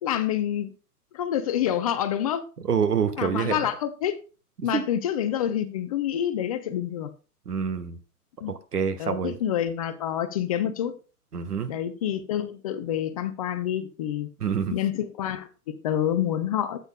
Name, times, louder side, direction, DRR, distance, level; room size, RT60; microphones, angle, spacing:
voice 1, 0.0-0.7 1.1-2.4 3.2-4.2 4.6-7.1 8.4-8.5 9.0-11.0 11.7-14.3 14.7-16.8, left 10 dB, 25° left, 0.5 m, -27 dB
voice 2, 2.6-3.6 4.6-4.8 7.4-8.0 8.5-9.4 11.3-11.7 14.4-14.7, right 7 dB, 80° right, 1.4 m, -26 dB
12.5 x 8.3 x 2.2 m
hypercardioid pair, 125°, 46 cm